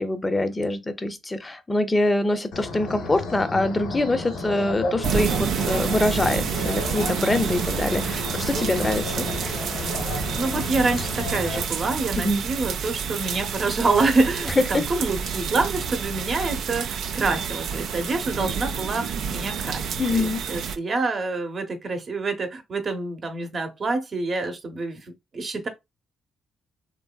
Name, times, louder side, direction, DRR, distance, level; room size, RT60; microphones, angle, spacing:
voice 1, 0.0-9.3 12.2-12.4 14.6-14.8 20.0-20.4, left 2 dB, 20° left, 0.4 m, -24 dB
sound 1, 2.5-11.6, left 2 dB, 85° left, 0.8 m, -32 dB
sound 2, 5.0-20.8, right 7 dB, 70° right, 0.3 m, -29 dB
voice 2, 10.4-25.1 25.3-25.7, right 3 dB, 40° right, 0.7 m, -26 dB
3.0 x 2.5 x 2.2 m
cardioid pair, 90°, 0 cm